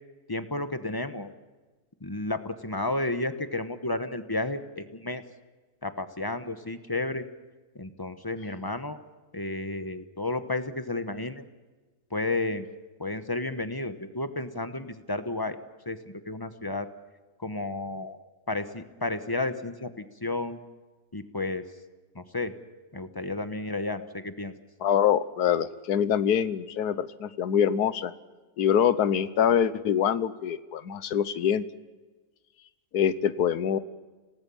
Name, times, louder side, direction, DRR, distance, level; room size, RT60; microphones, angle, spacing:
voice 1, 0.3-1.3 2.0-5.2 5.8-7.2 7.7-9.0 9.3-11.4 12.1-12.7 13.0-15.6 15.9-16.0 16.3-16.9 17.4-18.2 18.5-20.6 21.1-21.6 22.1-22.5 22.9-24.5, left 2 dB, 15° left, 10 dB, 1.0 m, -32 dB
voice 2, 24.8-28.1 28.6-31.6 32.9-33.8, left 8 dB, 85° left, 15 dB, 1.4 m, -24 dB
27.0 x 18.5 x 7.1 m, 1.3 s
omnidirectional pair, 1.6 m